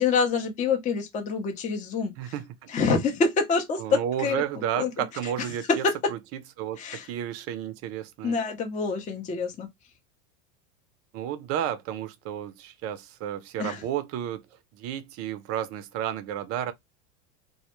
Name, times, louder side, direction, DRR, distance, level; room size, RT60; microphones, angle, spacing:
voice 1, 0.0-2.3 2.7-4.9 5.7-6.0 6.8-7.1 8.2-9.7 13.6-13.8, left 4 dB, 20° left, 0.5 m, -26 dB
voice 2, 2.2-2.7 3.8-5.8 6.1-6.2 6.6-8.4 11.1-14.4 14.7-16.7, right 10 dB, 35° right, 0.5 m, -32 dB
2.2 x 2.1 x 2.9 m
hypercardioid pair, 105°, 41 cm